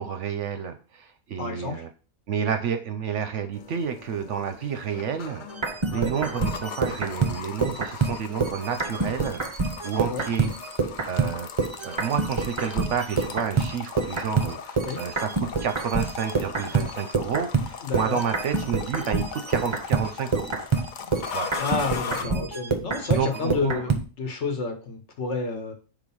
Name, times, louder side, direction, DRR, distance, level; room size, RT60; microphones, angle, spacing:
voice 1, 0.0-1.9 2.3-5.5 5.9-9.4 9.8-10.5 11.1-11.5 11.8-20.6 21.3-21.6 22.2-22.5 23.2-23.9, right 7 dB, 65° right, 8 dB, 0.9 m, -30 dB
voice 2, 1.4-1.8 5.9-6.1 10.1-10.2 14.8-15.0 17.8-18.2 21.6-25.7, left 4 dB, 55° left, 4 dB, 1.3 m, -30 dB
sound 1, 3.5-22.3, left 6 dB, 70° left, 0.4 m, -39 dB
sound 2, 5.5-11.3 11.6-24.0, right 4 dB, 30° right, 0.6 m, -27 dB
5.0 x 3.6 x 5.5 m, 0.35 s
omnidirectional pair, 1.5 m